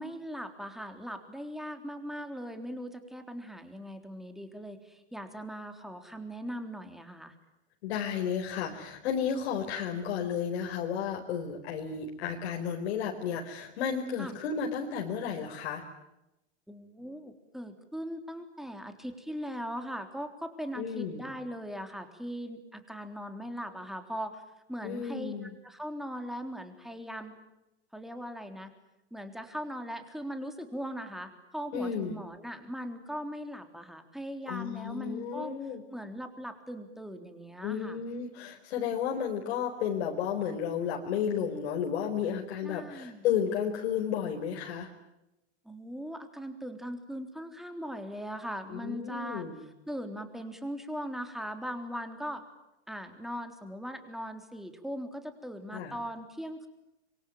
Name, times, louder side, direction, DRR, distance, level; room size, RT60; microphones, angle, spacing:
voice 1, 0.0-7.3 14.2-14.3 16.7-24.4 24.7-25.4 25.6-27.3 27.9-28.7 29.1-35.6 35.9-38.0 42.6-43.3 45.7-49.5 49.9-52.4 52.9-56.7, equal, ahead, 6 dB, 3.6 m, -39 dB
voice 2, 7.8-15.8 20.8-21.3 24.8-25.5 31.7-32.2 34.5-35.8 37.6-44.9 48.7-49.6 55.7-55.9, left 7 dB, 70° left, 0 dB, 4.5 m, -32 dB
26.5 x 24.0 x 9.2 m, 0.92 s
supercardioid pair, 120°, 34 cm